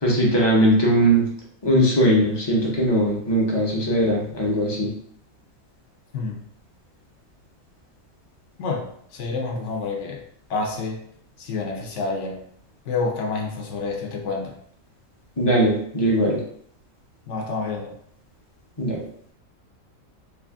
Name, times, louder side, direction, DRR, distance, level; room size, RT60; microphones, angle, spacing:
voice 1, 0.0-1.3 1.6-4.9 15.4-16.4 18.8-19.0, equal, 25° left, -3 dB, 0.6 m, -20 dB
voice 2, 8.6-10.2 10.5-11.0 11.4-12.4 12.9-14.5 17.3-17.9, left 3 dB, 65° left, 1 dB, 0.9 m, -28 dB
3.3 x 2.4 x 3.5 m, 0.65 s
omnidirectional pair, 1.4 m